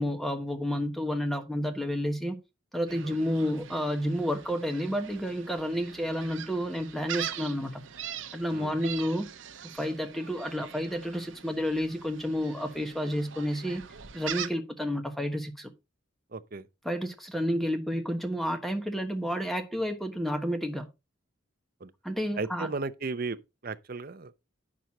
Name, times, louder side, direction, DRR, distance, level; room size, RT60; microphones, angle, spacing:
voice 1, 0.0-2.4 2.7-7.8 8.3-9.3 9.7-13.8 14.1-15.7 16.8-20.9 22.0-22.7, equal, ahead, 1.2 m, -30 dB
Gull seagull, 2.9-14.5, right 9 dB, 85° right, 0.8 m, -42 dB
voice 2, 16.3-16.7 21.8-21.9 22.4-23.4 23.6-24.3, right 3 dB, 50° right, 0.7 m, -35 dB
9.2 x 6.3 x 4.1 m
head